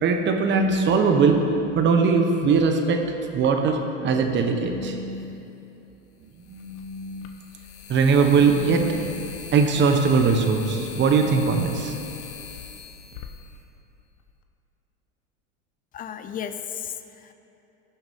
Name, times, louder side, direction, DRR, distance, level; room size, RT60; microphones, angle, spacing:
voice 1, 0.0-1.5 1.7-3.0 3.3-5.4 6.4-7.3 7.9-9.3 9.5-11.9, right 5 dB, 30° right, 4 dB, 1.1 m, -21 dB
sound 1, 4.9-5.0 6.4-14.3, left 7 dB, 80° left, 1.0 m, -41 dB
voice 2, 15.9-17.3, left 8 dB, 25° left, 10 dB, 0.5 m, -34 dB
16.5 x 7.0 x 3.6 m, 2.8 s
supercardioid pair, 115°, 36 cm